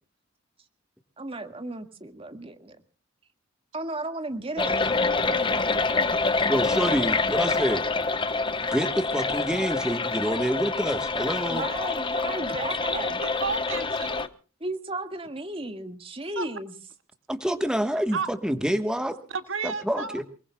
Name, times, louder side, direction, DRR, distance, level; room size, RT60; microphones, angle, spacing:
voice 1, 1.2-2.8 3.7-6.8 11.5-13.2 14.6-16.7, right 2 dB, 25° right, 7 dB, 1.8 m, -35 dB
sound 1, 4.6-14.3, left 3 dB, 25° left, 0.9 m, -26 dB
voice 2, 6.5-7.8 8.7-11.6 17.3-19.2 19.6-20.2, equal, 5° right, 7 dB, 1.3 m, -27 dB
voice 3, 12.9-14.3 16.4-16.5 18.1-18.3 19.3-20.2, right 5 dB, 70° right, 8 dB, 2.0 m, -32 dB
29.0 x 20.5 x 2.3 m, 0.39 s
head